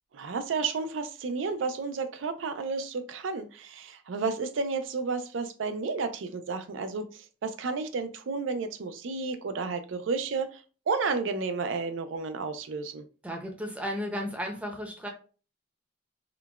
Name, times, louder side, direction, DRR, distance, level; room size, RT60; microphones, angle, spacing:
voice 1, 0.1-13.0, right 4 dB, 85° right, 9 dB, 0.4 m, -32 dB
voice 2, 13.2-15.1, equal, 5° right, 1 dB, 0.5 m, -34 dB
3.8 x 2.1 x 2.3 m, 0.37 s
head